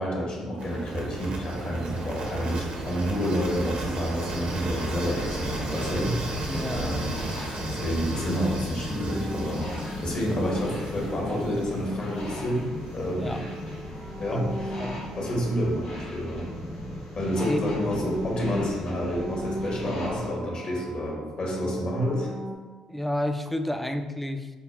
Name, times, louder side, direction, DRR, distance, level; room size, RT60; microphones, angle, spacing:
voice 1, 0.0-6.1 6.7-13.4 14.2-14.8 15.2-16.5 17.1-22.3, equal, 50° left, -3 dB, 1.1 m, -29 dB
sound 1, 0.6-12.5, right 2 dB, 60° right, 0.7 m, -35 dB
sound 2, 4.7-20.3, left 1 dB, 80° left, 1.1 m, -37 dB
voice 2, 6.5-6.9 13.1-13.4 14.3-14.4 14.8-15.0 17.5-17.6 22.9-24.5, left 1 dB, 5° left, 7 dB, 0.3 m, -30 dB
sound 3, 9.1-12.0 12.6-17.4 17.7-22.6, right 1 dB, 90° right, 0.9 m, -40 dB
5.1 x 2.3 x 2.2 m, 1.3 s
hypercardioid pair, 50°, 2 cm